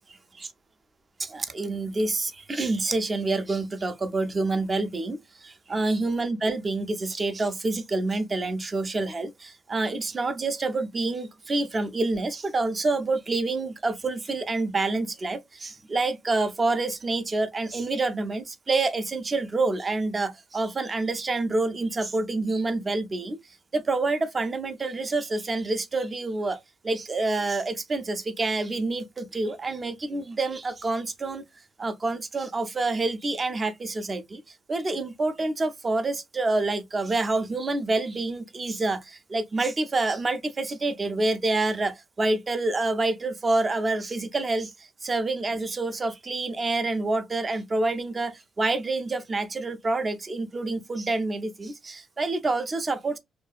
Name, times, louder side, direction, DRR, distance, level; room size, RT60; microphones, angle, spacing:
voice 1, 1.2-23.4 23.7-31.4 31.8-34.4 34.7-53.2, right 2 dB, 30° right, 0.4 m, -27 dB
2.6 x 2.2 x 2.4 m
cardioid pair, 90°, 0 cm